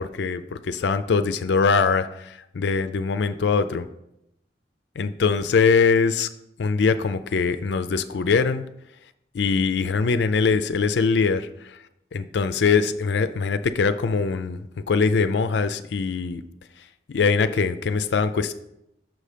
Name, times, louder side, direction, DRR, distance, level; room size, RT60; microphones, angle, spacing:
voice 1, 0.0-3.9 5.0-6.3 6.6-8.6 9.3-11.8 12.1-16.4 17.1-18.5, left 5 dB, 80° left, 11 dB, 0.4 m, -22 dB
6.1 x 5.4 x 5.0 m, 0.82 s
head